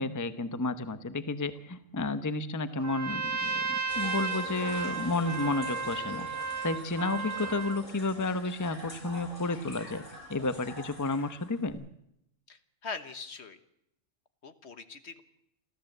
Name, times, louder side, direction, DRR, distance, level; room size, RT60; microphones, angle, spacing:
voice 1, 0.0-6.3 6.6-10.0 10.3-11.9, left 2 dB, 15° left, 11 dB, 0.8 m, -32 dB
Trumpet, 2.8-7.8, right 5 dB, 50° right, 1.5 m, -34 dB
sound 1, 3.9-11.7, left 1 dB, 80° left, 7.1 m, -45 dB
voice 2, 12.5-13.6 14.4-15.2, left 4 dB, 60° left, 10 dB, 1.6 m, -42 dB
27.5 x 14.0 x 7.9 m, 0.79 s
omnidirectional pair, 1.3 m